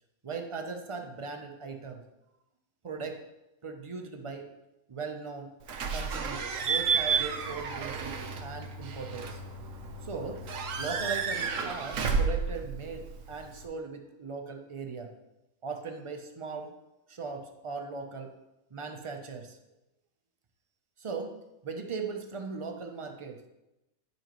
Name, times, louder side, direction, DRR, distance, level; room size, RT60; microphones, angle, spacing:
voice 1, 0.2-2.0 2.8-3.2 3.6-4.5 4.9-5.5 5.9-9.4 10.0-10.4 10.8-15.1 15.6-16.7 17.1-18.3 18.7-19.6 21.0-21.3 21.6-23.4, right 5 dB, 40° right, 4 dB, 0.4 m, -38 dB
Slam / Squeak / Alarm, 5.7-13.6, right 5 dB, 65° right, 1.1 m, -32 dB
10.5 x 5.2 x 3.0 m, 0.94 s
omnidirectional pair, 1.5 m